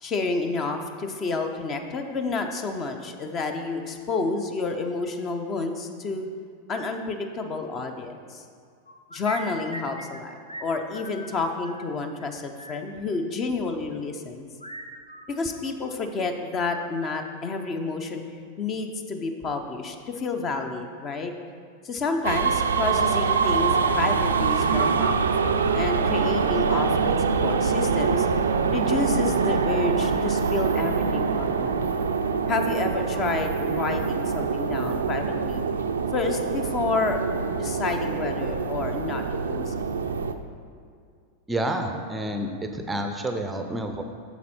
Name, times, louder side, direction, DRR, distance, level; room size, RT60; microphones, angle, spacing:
voice 1, 0.0-6.3 6.7-8.4 9.1-14.5 15.3-18.2 18.6-21.3 21.8-28.3 28.7-31.8 32.5-35.6 36.1-37.2 37.5-39.8, left 3 dB, 30° left, 6 dB, 0.7 m, -30 dB
sound 1, 8.9-10.2 10.5-10.7 10.9-11.9 12.2-12.3 12.6-12.8 14.6-16.0 16.3-17.1, right 1 dB, 90° left, 0.6 m, -41 dB
sound 2, 22.2-40.3, right 5 dB, 70° right, 0.4 m, -24 dB
voice 2, 41.5-44.0, right 1 dB, 10° right, 5 dB, 0.6 m, -29 dB
8.3 x 6.9 x 4.3 m, 2.2 s
figure-of-eight pair, 90°, 0 cm